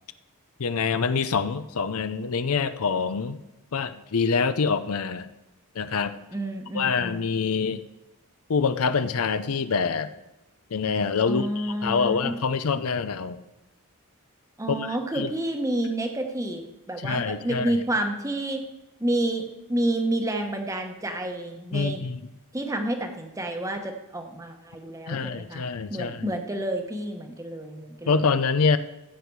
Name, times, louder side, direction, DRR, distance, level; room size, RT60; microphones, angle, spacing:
voice 1, 0.6-3.4 3.7-5.3 5.7-6.2 6.7-7.8 8.5-10.1 10.7-13.4 14.7-15.3 17.0-17.8 21.7-22.2 25.1-26.3 28.1-28.8, left 5 dB, 75° left, 12 dB, 0.6 m, -25 dB
voice 2, 6.3-7.3 11.3-12.4 14.6-18.6 19.0-22.0 22.5-25.6 25.9-28.3, right 1 dB, 15° right, 5 dB, 1.1 m, -29 dB
15.0 x 8.3 x 4.7 m, 0.98 s
head